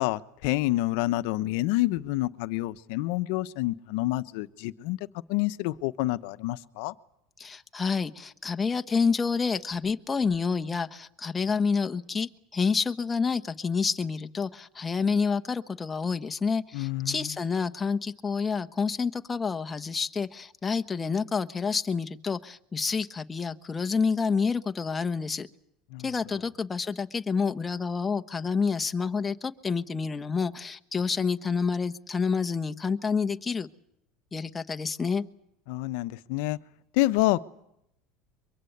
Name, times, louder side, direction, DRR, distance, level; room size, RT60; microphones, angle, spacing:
voice 1, 0.0-5.0 5.3-6.9 16.7-17.4 25.9-26.1 35.7-36.6 37.0-37.4, left 18 dB, 70° left, 13 dB, 1.0 m, -28 dB
voice 2, 7.4-25.5 26.0-33.7 34.3-35.2, left 5 dB, 20° left, 9 dB, 1.2 m, -28 dB
23.5 x 23.5 x 8.1 m, 0.76 s
supercardioid pair, 105°, 0 cm